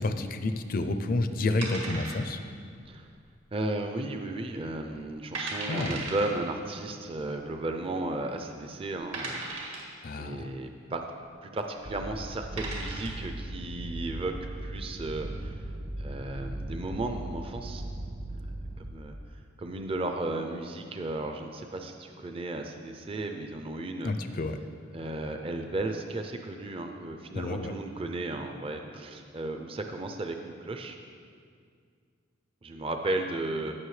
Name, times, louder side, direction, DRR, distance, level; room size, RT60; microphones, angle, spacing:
voice 1, 0.0-2.4 5.7-6.0 10.0-10.5 24.0-24.6 27.3-27.7, left 2 dB, 45° left, 9 dB, 0.5 m, -30 dB
sound 1, 1.6-2.6 2.8-2.9 3.5-4.0 4.3-4.4 5.0-5.1 5.3-6.3 7.4-7.5 8.2-8.3 9.1-10.0 11.8-12.0 12.4-13.2, right 3 dB, 75° right, 2.0 m, -37 dB
voice 2, 3.5-9.9 10.2-11.1 11.4-14.3 14.6-15.7 16.0-17.9 18.8-19.1 19.6-24.1 24.9-31.0 32.6-33.7, right 2 dB, 30° right, 5 dB, 0.5 m, -34 dB
sound 2, 11.8-18.9, right 1 dB, 50° right, 0.8 m, -38 dB
16.0 x 6.2 x 3.2 m, 2.1 s
head